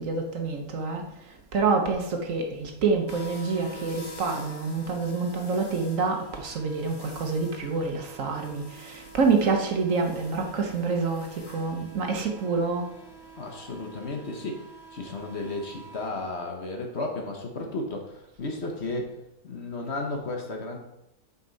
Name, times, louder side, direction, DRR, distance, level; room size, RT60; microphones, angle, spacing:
voice 1, 0.0-12.9, right 4 dB, 60° right, 1.3 m, -27 dB
sound 1, 3.1-16.1, right 1 dB, 20° left, 0.7 m, -47 dB
voice 2, 13.4-14.6 14.9-19.1 19.4-20.8, left 2 dB, 50° left, 1.2 m, -33 dB
8.0 x 5.5 x 4.0 m
omnidirectional pair, 1.6 m